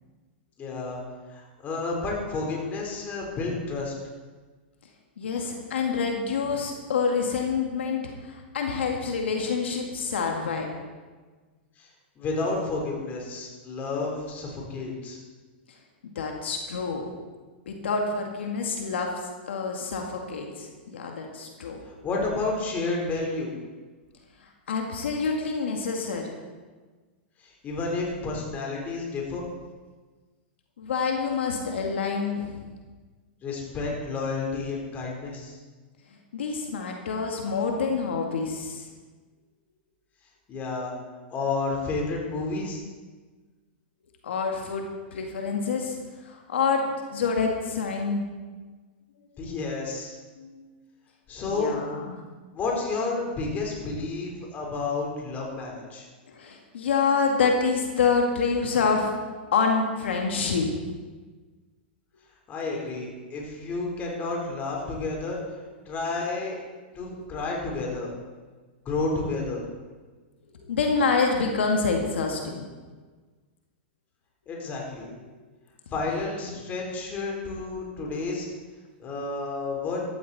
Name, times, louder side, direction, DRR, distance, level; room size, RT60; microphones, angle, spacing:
voice 1, 0.6-1.0 1.3-3.9 11.8-11.9 12.2-15.2 22.0-23.5 27.4-29.4 33.4-35.6 40.5-40.9 41.3-42.8 49.4-50.2 51.3-51.8 52.5-56.0 62.5-65.4 65.9-66.6 66.9-68.1 68.9-69.6 74.5-75.1 75.9-78.5 79.0-80.0, left 3 dB, 25° left, -1 dB, 3.9 m, -30 dB
voice 2, 5.2-10.8 16.2-17.1 17.7-19.1 19.5-21.8 24.4-26.3 30.8-32.6 36.3-38.9 44.2-46.0 46.2-48.2 50.4-50.7 51.4-52.2 56.3-59.1 59.5-60.7 62.9-63.0 65.6-65.7 67.1-67.3 70.6-72.7 76.4-76.6, left 5 dB, 85° left, 1 dB, 2.0 m, -27 dB
14.5 x 13.0 x 4.2 m, 1.4 s
hypercardioid pair, 130°, 6 cm